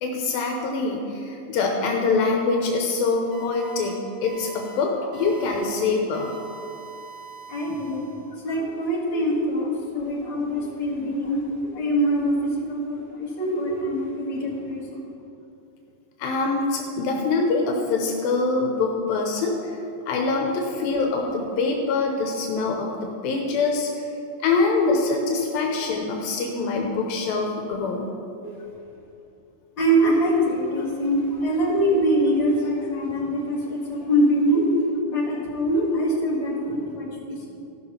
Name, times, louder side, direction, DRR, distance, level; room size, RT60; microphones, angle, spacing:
voice 1, 0.0-6.3 16.2-19.8 20.1-24.1 24.4-28.1, left 3 dB, 85° left, 1 dB, 2.6 m, -24 dB
sound 1, 3.3-3.9 4.2-4.8 5.1-5.7 6.1-8.4, right 5 dB, 25° right, 1.6 m, -43 dB
voice 2, 7.5-15.1 28.4-28.6 29.8-34.8 35.1-37.5, equal, 40° left, -6 dB, 2.1 m, -24 dB
14.5 x 6.0 x 5.6 m, 2.7 s
omnidirectional pair, 4.1 m